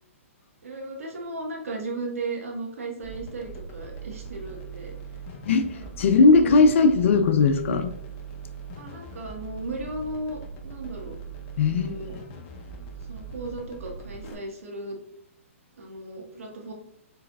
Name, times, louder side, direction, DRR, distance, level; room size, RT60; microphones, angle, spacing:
voice 1, 0.6-5.0 5.7-5.9 6.2-6.5 8.8-11.2 11.6-12.1 13.1-15.0 15.8-16.7, right 2 dB, 80° right, 0 dB, 1.5 m, -36 dB
sound 1, 3.0-14.3, right 5 dB, 35° left, 0.8 m, -40 dB
voice 2, 5.5-7.9 11.6-11.9, left 4 dB, 65° left, 7 dB, 0.5 m, -19 dB
4.6 x 4.1 x 2.3 m, 0.71 s
hypercardioid pair, 135°, 7 cm